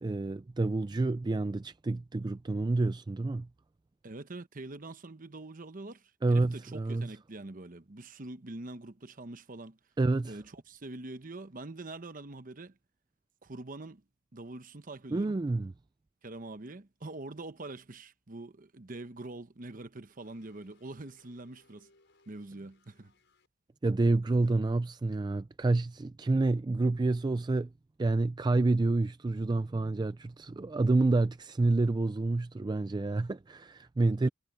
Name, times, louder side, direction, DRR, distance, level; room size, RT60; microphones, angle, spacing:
voice 1, 0.0-3.5 6.2-7.1 10.0-10.4 15.1-15.7 23.8-27.7 28.0-34.3, right 2 dB, 20° right, 0.3 m, -28 dB
voice 2, 4.0-9.8 10.2-12.8 13.4-14.0 14.3-15.4 16.2-21.9 22.3-23.1 24.4-24.6 34.2-34.3, right 2 dB, 45° right, 1.0 m, -44 dB
sound 1, 20.2-23.5, left 2 dB, 65° left, 6.9 m, -66 dB
head